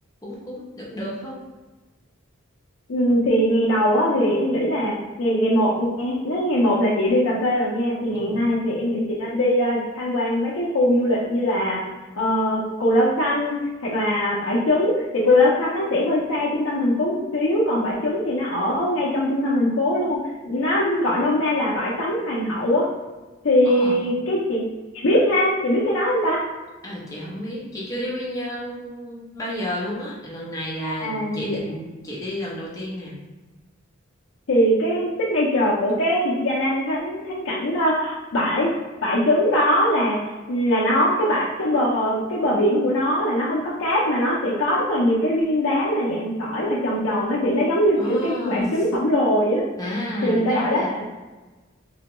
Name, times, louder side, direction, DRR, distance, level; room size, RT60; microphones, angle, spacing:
voice 1, 0.2-1.4 8.1-8.4 23.6-24.0 26.8-33.1 48.0-48.8 49.8-51.0, left 1 dB, 15° left, -6 dB, 0.7 m, -31 dB
voice 2, 2.9-4.9 5.2-11.9 12.1-13.6 13.8-22.9 23.4-24.6 24.9-26.4 30.9-31.6 34.5-38.7 39.0-40.2 40.5-49.6 50.2-51.0, left 1 dB, 70° left, -6 dB, 0.5 m, -21 dB
3.4 x 2.2 x 2.9 m, 1.2 s
head